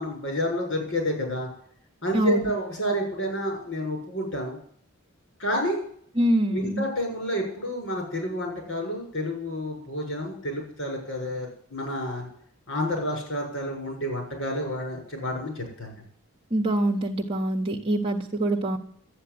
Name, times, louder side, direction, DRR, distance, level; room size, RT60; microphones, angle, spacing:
voice 1, 0.0-1.5 2.0-4.6 5.4-5.8 6.5-12.3 12.7-16.0, equal, 65° left, 1 dB, 7.0 m, -29 dB
voice 2, 2.1-2.5 6.2-6.9 16.5-18.8, right 1 dB, 30° right, 0 dB, 1.3 m, -24 dB
12.5 x 9.4 x 9.5 m, 0.63 s
head